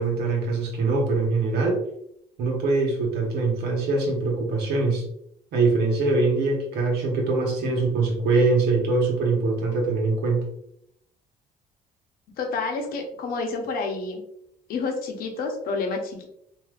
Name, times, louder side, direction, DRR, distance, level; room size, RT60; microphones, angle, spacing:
voice 1, 0.0-1.8 2.4-5.0 5.5-10.4, right 3 dB, 80° right, 0 dB, 1.1 m, -23 dB
voice 2, 12.4-14.2 14.7-16.3, left 3 dB, 65° left, 3 dB, 0.7 m, -29 dB
3.3 x 2.6 x 2.4 m, 0.73 s
cardioid pair, 110°, 17 cm